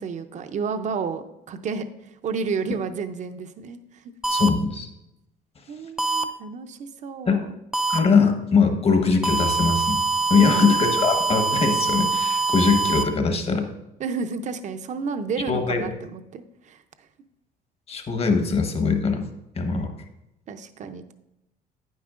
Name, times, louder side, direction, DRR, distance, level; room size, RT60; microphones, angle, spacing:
voice 1, 0.0-4.0 5.7-7.5 10.3-10.7 14.0-16.8 20.5-21.1, right 5 dB, 45° right, 9 dB, 0.6 m, -31 dB
sound 1, 4.2-4.5 6.0-6.2 7.7-8.0 9.2-13.0, right 4 dB, 5° right, 0.4 m, -23 dB
voice 2, 4.3-4.9 7.3-7.4 7.9-10.0 10.3-13.7 15.5-15.8 17.9-19.3 19.6-19.9, left 5 dB, 35° left, 6 dB, 1.2 m, -21 dB
9.7 x 9.3 x 2.5 m, 0.90 s
cardioid pair, 110°, 17 cm